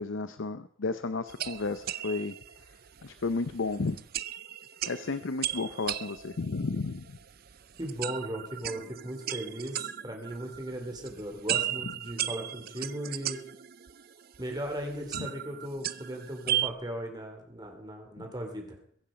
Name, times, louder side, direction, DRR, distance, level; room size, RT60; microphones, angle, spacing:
voice 1, 0.0-2.3 3.0-4.0 4.9-7.2 15.1-15.3 18.2-18.3, left 3 dB, 85° left, 12 dB, 0.7 m, -33 dB
sound 1, 1.3-16.7, right 11 dB, 50° right, 0.6 m, -36 dB
voice 2, 7.8-13.4 14.4-18.8, right 1 dB, 20° right, 3 dB, 3.2 m, -37 dB
22.0 x 8.8 x 5.2 m, 0.63 s
head